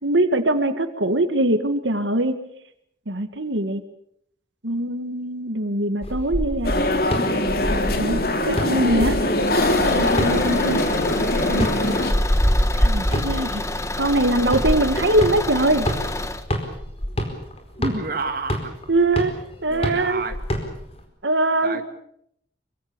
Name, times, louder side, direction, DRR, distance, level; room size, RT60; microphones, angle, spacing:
voice 1, 0.0-2.4 3.1-3.8 4.6-6.7 8.0-9.2 9.9-10.9 11.5-11.7 12.8-13.6 14.0-15.9 18.9-19.3 19.6-20.2 21.2-21.8, right 1 dB, 90° right, 9 dB, 1.9 m, -22 dB
sound 1, 6.0-21.0, equal, 35° left, 4.6 m, -26 dB
sound 2, 6.6-12.1, left 1 dB, 55° left, 3.0 m, -22 dB
Car / Engine, 9.4-16.5, left 2 dB, 15° left, 1.5 m, -29 dB
voice 2, 17.8-18.7 19.7-20.4 21.6-21.8, right 3 dB, 50° right, 6 dB, 2.4 m, -29 dB
25.0 x 24.5 x 6.9 m, 0.70 s
head